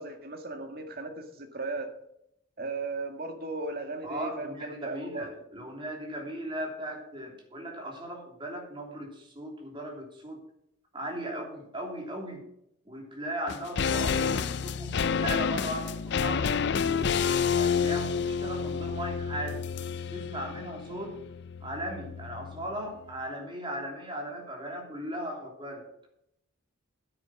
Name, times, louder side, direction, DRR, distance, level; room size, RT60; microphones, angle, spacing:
voice 1, 0.0-1.9 2.6-5.3, right 3 dB, 45° right, 5 dB, 1.8 m, -36 dB
voice 2, 4.0-10.4 10.9-12.4 12.8-17.1 17.5-19.6 20.1-21.2 21.6-25.9, right 1 dB, 25° right, 1 dB, 2.9 m, -37 dB
sound 1, 13.5-22.9 23.1-23.2, left 6 dB, 55° left, 0.5 m, -29 dB
10.0 x 9.2 x 5.9 m, 0.77 s
head